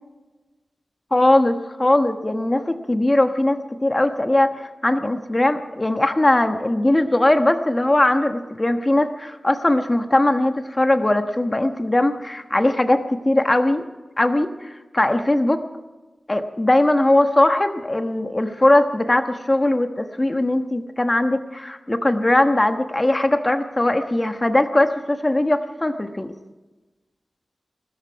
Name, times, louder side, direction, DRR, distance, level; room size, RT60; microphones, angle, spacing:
voice 1, 1.1-13.8 14.2-15.6 16.3-26.3, left 1 dB, 25° left, 7 dB, 1.2 m, -20 dB
21.5 x 13.5 x 4.7 m, 1.2 s
wide cardioid pair, 65°, 0 cm